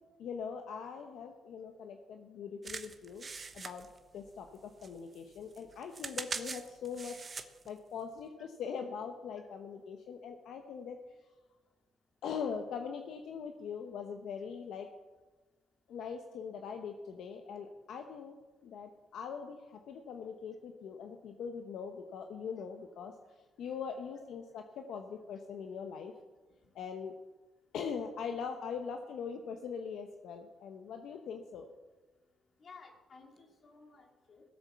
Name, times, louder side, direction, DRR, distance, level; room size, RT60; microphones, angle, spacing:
voice 1, 0.2-3.3 3.5-3.9 4.1-7.2 7.6-11.0 12.2-14.9 15.9-18.3 18.6-23.1 23.6-26.1 26.7-27.1 27.7-31.7, left 6 dB, 75° left, 4 dB, 1.0 m, -41 dB
sound 1, 2.6-4.6 4.8-7.7 8.2-8.3, right 4 dB, 35° right, 1.0 m, -43 dB
voice 2, 32.6-34.4, left 4 dB, 45° left, 2 dB, 2.9 m, -56 dB
17.5 x 7.9 x 7.1 m, 1.3 s
cardioid pair, 90°, 0 cm